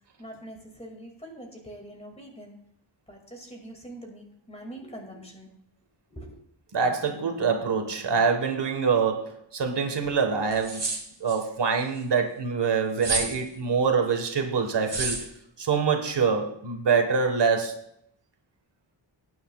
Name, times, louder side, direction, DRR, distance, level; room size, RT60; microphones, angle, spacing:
voice 1, 0.2-2.6 3.1-5.5 6.1-6.3, right 1 dB, 15° left, 1 dB, 2.2 m, -43 dB
voice 2, 6.7-10.8 11.2-15.3 15.6-17.9, right 5 dB, 65° right, 5 dB, 1.5 m, -25 dB
sound 1, 10.5-11.4 13.0-13.4 14.9-15.2, right 3 dB, 35° right, 2.4 m, -29 dB
18.0 x 9.4 x 2.4 m, 0.70 s
wide cardioid pair, 175°, 45 cm